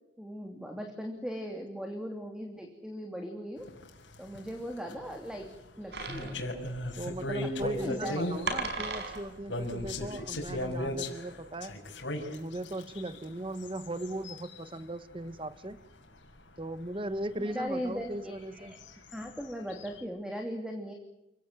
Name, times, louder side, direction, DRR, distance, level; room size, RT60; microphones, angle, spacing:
voice 1, 0.2-3.6 4.2-5.5 5.8-6.4 7.4-8.6 17.4-18.8 19.1-20.9, equal, 5° right, 4 dB, 2.9 m, -38 dB
sound 1, 3.6-14.8 15.1-15.3 15.7-15.9 16.3-16.4 16.8-16.9 17.2-17.3 18.3-20.0, left 1 dB, 70° left, 5.9 m, -37 dB
sound 2, 5.9-10.8, right 3 dB, 60° right, 5.4 m, -38 dB
voice 2, 7.0-11.7 12.3-15.8 16.6-18.7, right 1 dB, 30° right, 13 dB, 1.3 m, -38 dB
29.5 x 17.5 x 9.6 m, 0.93 s
head